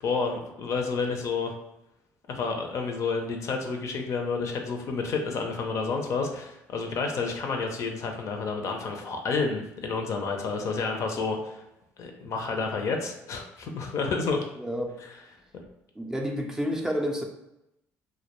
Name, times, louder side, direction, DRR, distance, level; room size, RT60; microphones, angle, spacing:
voice 1, 0.0-1.5 2.3-11.6 12.0-14.4 15.0-15.2, left 4 dB, 55° left, 3 dB, 0.5 m, -30 dB
voice 2, 14.6-15.0 16.0-17.2, equal, 10° right, 1 dB, 0.4 m, -29 dB
2.1 x 2.1 x 2.9 m, 0.87 s
supercardioid pair, 80°, 6 cm